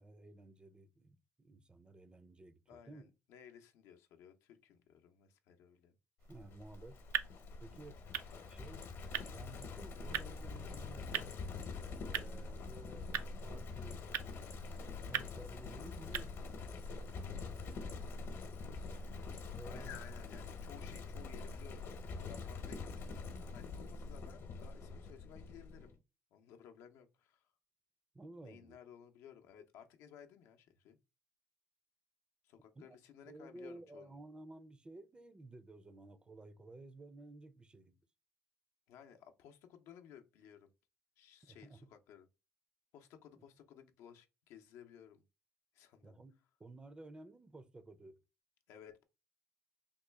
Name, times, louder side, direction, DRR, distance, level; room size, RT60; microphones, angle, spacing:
voice 1, 0.0-3.1 6.3-7.0 7.6-8.0 8.4-8.8 9.3-11.4 12.0-14.0 14.7-17.1 19.6-20.0 28.1-28.8 32.8-32.9 33.3-38.0 41.5-41.9 43.3-43.4 46.0-48.2, right 2 dB, 20° right, 0.4 m, -54 dB
voice 2, 2.7-5.9 8.3-8.5 19.6-22.8 23.5-25.9 26.3-27.5 28.4-31.0 32.4-34.1 38.9-40.7 41.2-42.3 42.9-45.2 45.7-46.2 48.7-49.0, left 9 dB, 85° left, 0.6 m, -57 dB
sound 1, 6.2-16.7, right 10 dB, 85° right, 0.4 m, -45 dB
Livestock farm animals working animals, 6.3-25.9, left 4 dB, 60° left, 0.8 m, -45 dB
3.6 x 2.2 x 3.2 m
cardioid pair, 105°, 5 cm